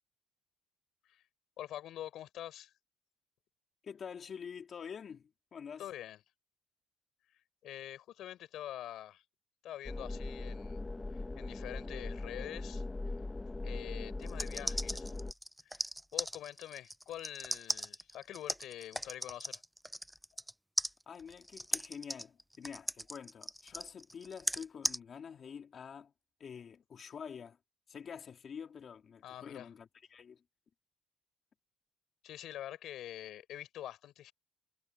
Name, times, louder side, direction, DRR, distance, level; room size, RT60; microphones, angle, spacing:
voice 1, 1.6-2.7 5.8-6.2 7.6-9.2 9.6-10.8 11.1-12.8 13.6-15.1 15.6-15.8 16.1-19.6 29.2-29.7 32.2-34.3, left 12 dB, 70° left, 6.3 m, -45 dB
voice 2, 3.8-5.9 21.1-26.1 26.4-27.6 27.9-30.4, left 7 dB, 40° left, 3.2 m, -47 dB
sound 1, 9.9-15.3, left 2 dB, 15° left, 1.0 m, -40 dB
sound 2, 14.2-20.5 20.8-25.0, equal, ahead, 0.4 m, -37 dB
cardioid pair, 130°, 0 cm